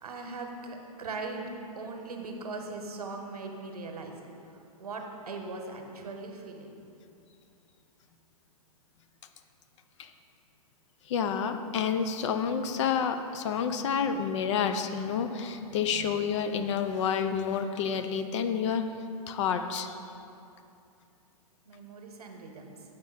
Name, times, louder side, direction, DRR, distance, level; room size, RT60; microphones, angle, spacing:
voice 1, 0.0-4.1 4.8-6.8 21.6-22.8, right 3 dB, 80° right, 3 dB, 1.0 m, -39 dB
voice 2, 11.1-18.9 19.3-19.9, left 7 dB, 50° left, 8 dB, 0.5 m, -29 dB
8.0 x 5.2 x 4.0 m, 2.6 s
hypercardioid pair, 120°, 19 cm